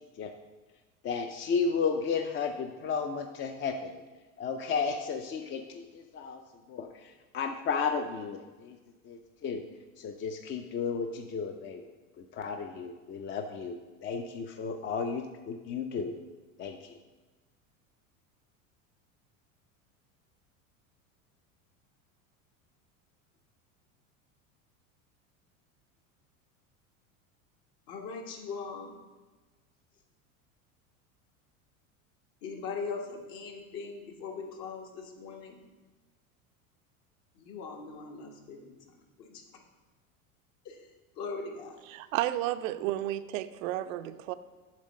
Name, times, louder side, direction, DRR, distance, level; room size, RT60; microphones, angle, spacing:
voice 1, 1.0-3.9 4.4-6.4 6.7-6.9 7.3-8.7 9.1-9.6 10.0-11.8 12.3-16.1 16.6-16.8, left 5 dB, 30° left, 6 dB, 0.4 m, -33 dB
voice 2, 27.9-28.9 32.4-35.6 37.4-38.7 39.2-39.4 40.6-40.8 41.2-41.8, left 4 dB, 60° left, 2 dB, 1.4 m, -40 dB
voice 3, 41.9-44.3, right 14 dB, 75° right, 11 dB, 0.5 m, -32 dB
7.4 x 3.6 x 6.3 m, 1.3 s
hypercardioid pair, 95°, 41 cm